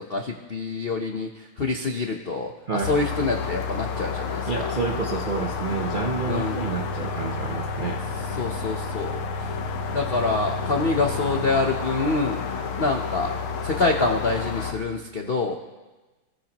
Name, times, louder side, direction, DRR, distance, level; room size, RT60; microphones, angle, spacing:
voice 1, 0.1-1.3 1.6-4.4 6.3-6.6 8.4-9.2 9.9-12.5 12.8-13.3 13.6-15.5, left 3 dB, 65° left, 2 dB, 0.5 m, -26 dB
voice 2, 2.7-3.0 4.5-8.0, right 5 dB, 70° right, 1 dB, 0.4 m, -29 dB
sound 1, 2.8-14.7, left 4 dB, 85° left, 1.9 m, -30 dB
23.0 x 14.5 x 3.0 m, 1.2 s
omnidirectional pair, 2.3 m